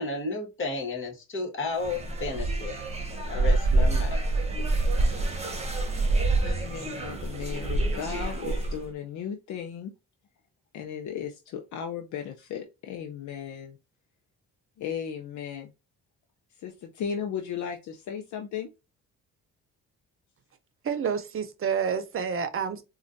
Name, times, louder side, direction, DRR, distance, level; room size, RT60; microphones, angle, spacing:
voice 1, 0.0-2.8 3.3-4.2, left 3 dB, 40° left, 1.6 m, -32 dB
sound 1, 1.7-8.9, right 2 dB, 20° right, 1.1 m, -26 dB
voice 2, 6.4-9.9 10.7-13.8 14.8-15.7 16.5-18.7, left 8 dB, 70° left, 0.7 m, -36 dB
voice 3, 20.8-22.8, right 7 dB, 45° right, 0.7 m, -29 dB
4.2 x 2.4 x 2.6 m
cardioid pair, 90°, 30 cm